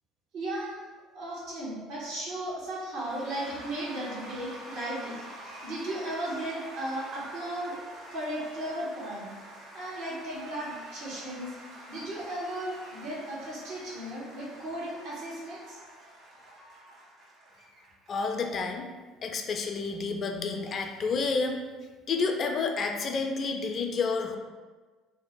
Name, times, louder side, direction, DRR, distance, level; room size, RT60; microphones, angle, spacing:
voice 1, 0.3-0.8 1.1-7.8 8.1-9.3 9.7-11.5 11.9-15.8, right 1 dB, 65° right, -6 dB, 1.1 m, -36 dB
Cheering / Applause / Crowd, 3.0-18.6, right 1 dB, 45° right, 1.4 m, -47 dB
voice 2, 18.1-18.9 19.2-21.6 22.1-24.4, left 4 dB, 45° left, 4 dB, 0.3 m, -30 dB
2.7 x 2.0 x 3.7 m, 1.3 s
hypercardioid pair, 60°, 0 cm